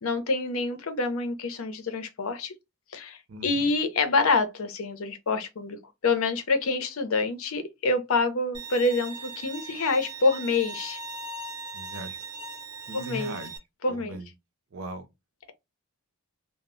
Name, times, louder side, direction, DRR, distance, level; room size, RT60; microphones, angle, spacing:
voice 1, 0.0-2.5 2.9-5.8 6.0-11.0 12.9-13.3 13.8-14.2, left 3 dB, 75° left, 0.6 m, -27 dB
voice 2, 3.3-3.7 11.7-12.2 12.9-13.5 13.9-14.3 14.7-15.1, right 2 dB, 70° right, 0.5 m, -39 dB
Bowed string instrument, 8.5-13.6, right 3 dB, 20° right, 0.5 m, -39 dB
2.0 x 2.0 x 3.6 m
head